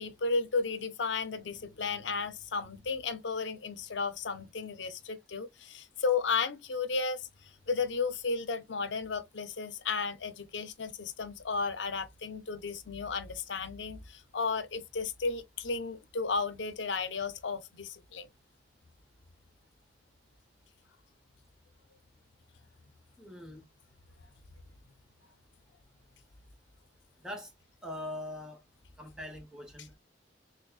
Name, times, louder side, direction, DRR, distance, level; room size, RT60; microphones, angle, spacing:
voice 1, 0.0-7.3 7.7-18.3, left 4 dB, 75° left, 0.6 m, -34 dB
voice 2, 23.2-23.6 27.2-27.5 27.8-28.6 29.0-29.9, left 1 dB, 5° right, 1.0 m, -42 dB
6.3 x 2.2 x 2.3 m
head